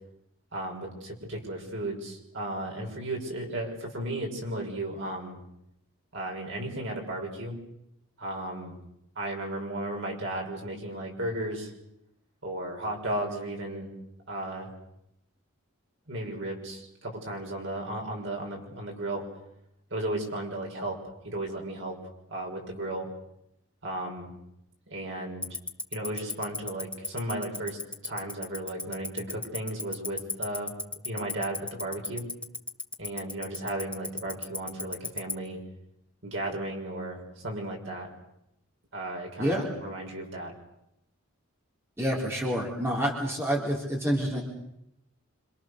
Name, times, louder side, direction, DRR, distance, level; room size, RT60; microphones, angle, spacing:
voice 1, 0.5-5.4 6.1-7.5 8.2-8.7 9.2-11.7 12.4-13.9 14.3-14.7 16.1-19.2 19.9-21.0 21.2-22.0 22.3-23.1 23.8-24.3 24.9-25.6 25.9-27.8 28.0-30.7 31.0-32.3 33.0-35.6 36.2-38.1 38.9-40.5, right 1 dB, 55° right, 1 dB, 6.1 m, -34 dB
Tick-tock, 25.4-35.3, left 2 dB, 5° left, 1.0 m, -31 dB
voice 2, 42.0-44.4, equal, 10° right, -2 dB, 3.9 m, -28 dB
27.0 x 26.5 x 6.6 m, 0.79 s
head